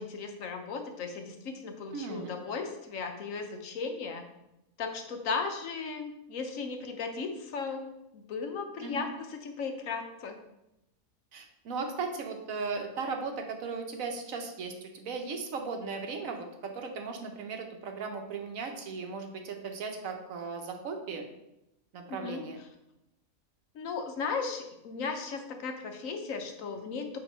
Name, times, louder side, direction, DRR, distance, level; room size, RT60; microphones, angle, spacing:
voice 1, 0.0-4.2 4.8-10.4 22.1-22.5 23.7-27.2, left 4 dB, 65° left, 5 dB, 1.1 m, -36 dB
voice 2, 1.9-2.3 8.8-9.1 11.3-21.3 21.9-22.6, right 4 dB, 70° right, 4 dB, 1.2 m, -37 dB
7.7 x 2.9 x 5.4 m, 0.87 s
omnidirectional pair, 1.5 m